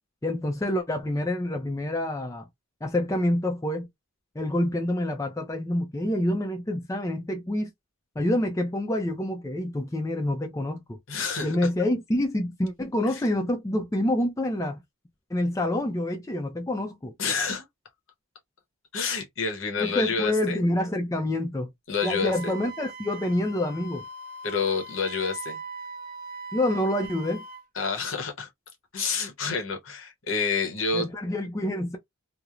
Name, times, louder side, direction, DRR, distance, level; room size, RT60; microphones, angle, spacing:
voice 1, 0.2-2.5 2.8-3.9 4.4-7.7 8.2-11.0 11.4-14.8 15.3-17.1 19.8-21.7 22.0-24.0 26.5-27.4 30.9-32.0, left 1 dB, 15° left, 0.4 m, -27 dB
voice 2, 11.1-11.6 13.1-13.2 17.2-17.6 18.9-20.6 21.9-22.5 24.4-25.6 27.7-28.5 28.9-31.1, left 4 dB, 60° left, 0.8 m, -28 dB
Wind instrument woodwind instrument, 22.0-27.6, right 3 dB, 40° right, 0.5 m, -40 dB
2.9 x 2.0 x 2.4 m
head